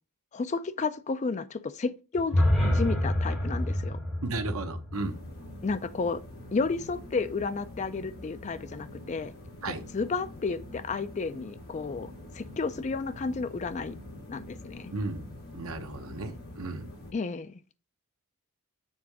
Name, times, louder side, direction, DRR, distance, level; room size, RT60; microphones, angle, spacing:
voice 1, 0.3-4.0 5.6-6.2 6.5-9.3 9.9-13.9 14.3-14.9 17.1-17.6, left 4 dB, 30° left, 0.4 m, -32 dB
sound 1, 2.1-6.2, left 1 dB, ahead, 2.6 m, -28 dB
voice 2, 4.2-5.2 9.6-9.8 14.9-15.2 15.5-16.9, right 2 dB, 75° right, 1.0 m, -34 dB
sound 2, 4.9-17.1, left 1 dB, 65° left, 2.5 m, -45 dB
7.1 x 3.7 x 4.7 m
head